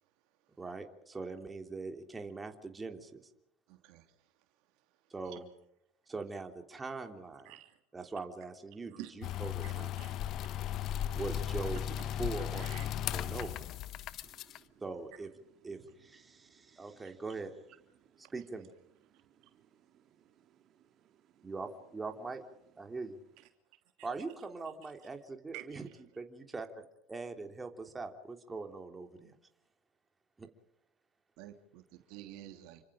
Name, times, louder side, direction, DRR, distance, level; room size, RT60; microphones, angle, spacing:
voice 1, 0.6-3.2 5.1-5.5 6.1-7.5 7.9-9.9 11.2-11.8 12.2-12.6 13.1-13.5 14.8-15.3 15.6-17.5 18.3-18.7 21.4-22.4 22.8-23.2 24.0-25.9 26.2-29.3 30.4-30.5, right 3 dB, 20° right, 3.4 m, -42 dB
voice 2, 3.7-4.0 7.5-7.7 8.9-9.1 9.6-9.7 10.0-10.1 11.7-11.8 12.3-12.9 25.5-25.6 31.4-32.8, right 15 dB, 65° right, 3.0 m, -49 dB
sound 1, 9.2-14.6, left 10 dB, 55° left, 1.1 m, -36 dB
voice 3, 14.2-14.8 15.6-15.9 16.2-17.2 17.9-18.3 19.1-21.5 22.9-23.0, right 10 dB, 50° right, 2.8 m, -67 dB
29.5 x 25.5 x 5.1 m
hypercardioid pair, 85°, 0 cm